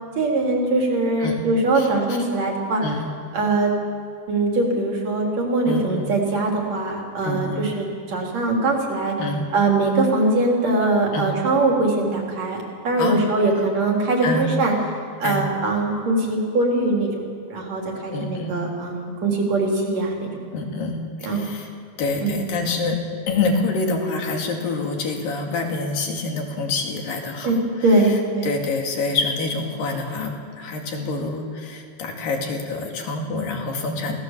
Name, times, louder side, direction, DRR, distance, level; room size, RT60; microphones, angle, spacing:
voice 1, 0.2-2.8 3.3-3.7 4.3-9.1 9.5-14.7 15.2-20.3 21.2-21.5 22.2-22.4 27.4-27.6 27.8-28.5, right 2 dB, 45° right, 0 dB, 4.6 m, -22 dB
voice 2, 2.8-3.1 5.7-6.1 7.2-7.7 9.2-9.5 11.1-11.3 13.0-13.2 14.2-14.5 15.2-15.5 18.1-18.5 20.5-21.7 22.0-23.0 23.3-27.5 28.4-34.2, left 3 dB, 70° left, 2 dB, 4.1 m, -26 dB
27.5 x 18.0 x 7.4 m, 2.3 s
omnidirectional pair, 4.3 m